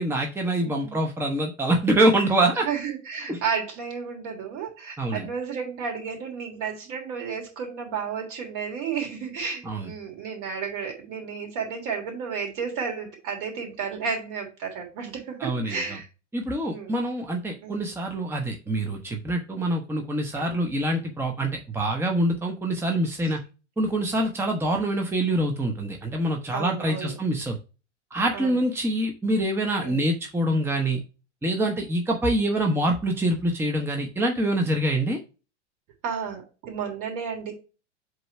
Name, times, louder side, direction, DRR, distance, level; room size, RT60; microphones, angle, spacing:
voice 1, 0.0-2.7 3.3-3.4 5.0-5.3 9.6-9.9 15.4-16.0 16.3-23.4 23.8-27.6 28.1-31.0 31.4-35.2, right 1 dB, 5° right, 3 dB, 0.9 m, -25 dB
voice 2, 0.6-1.0 2.6-16.1 16.6-17.0 17.6-17.9 20.3-20.6 26.5-27.1 28.3-28.6 29.8-30.0 36.0-37.5, right 6 dB, 50° right, 1 dB, 3.1 m, -32 dB
7.8 x 3.1 x 4.5 m, 0.31 s
figure-of-eight pair, 90°, 35 cm